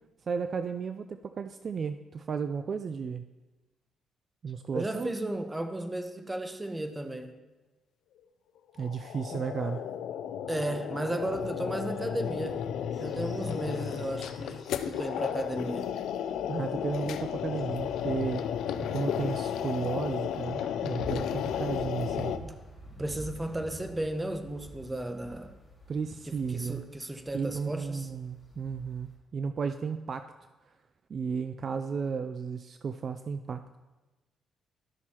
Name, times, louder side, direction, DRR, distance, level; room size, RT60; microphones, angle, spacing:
voice 1, 0.3-3.3 4.4-5.1 8.8-9.8 16.5-18.5 18.9-22.3 25.9-26.9 27.3-30.3 31.1-33.6, right 5 dB, 45° right, 9 dB, 0.3 m, -34 dB
voice 2, 4.7-7.3 9.3-9.4 10.5-12.7 13.0-15.9 23.0-25.5 26.3-28.1, right 1 dB, 15° right, 7 dB, 0.8 m, -34 dB
sound 1, 8.8-22.4, left 9 dB, 80° left, 0.4 m, -33 dB
sound 2, 12.9-29.2, right 1 dB, ahead, 2.4 m, -49 dB
12.5 x 6.1 x 2.9 m, 1.1 s
cardioid pair, 90°, 0 cm